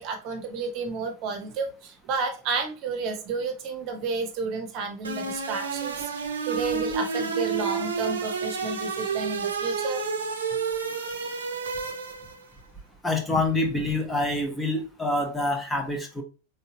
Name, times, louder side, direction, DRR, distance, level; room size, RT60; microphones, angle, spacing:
voice 1, 0.0-10.0, right 4 dB, 40° right, 5 dB, 0.9 m, -31 dB
sound 1, 5.0-12.5, right 5 dB, 70° right, 0.6 m, -30 dB
voice 2, 13.0-16.2, left 2 dB, 5° left, 2 dB, 0.9 m, -26 dB
3.9 x 3.5 x 2.7 m, 0.33 s
figure-of-eight pair, 90°, 0 cm